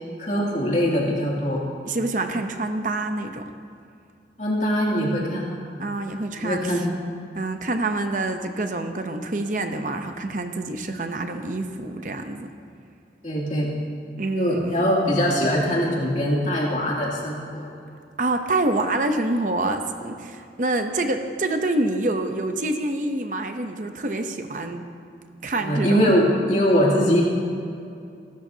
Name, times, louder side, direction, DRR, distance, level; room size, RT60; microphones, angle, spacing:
voice 1, 0.2-1.6 4.4-5.6 6.4-6.9 13.2-13.7 14.4-17.7 25.6-27.2, equal, 40° left, -4 dB, 2.7 m, -22 dB
voice 2, 1.8-3.5 5.8-6.9 7.3-12.5 14.2-14.9 18.2-24.9 25.4-26.1, right 2 dB, 45° right, 6 dB, 0.7 m, -26 dB
26.5 x 13.0 x 2.8 m, 2.5 s
head